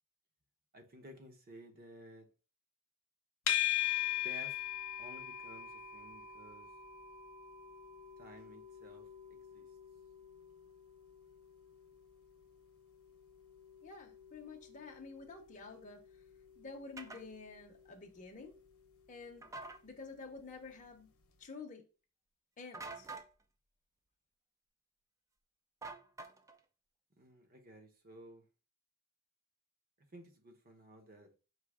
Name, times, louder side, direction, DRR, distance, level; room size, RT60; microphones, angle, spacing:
voice 1, 0.7-2.3 4.1-4.6 5.0-6.7 8.2-9.1 9.5-9.6 27.2-28.4 30.1-31.3, right 1 dB, 45° right, 0.9 m, -54 dB
sound 1, 3.5-20.7, left 11 dB, 70° left, 0.8 m, -42 dB
voice 2, 13.8-16.0 16.6-18.5 19.1-19.5 19.8-21.1 21.4-21.8 22.6-23.1, left 4 dB, 35° left, 0.7 m, -50 dB
sound 2, 17.0-17.2 19.4-19.8 22.7-23.3 25.8-26.6, right 3 dB, 15° right, 0.3 m, -46 dB
4.9 x 2.8 x 3.5 m
head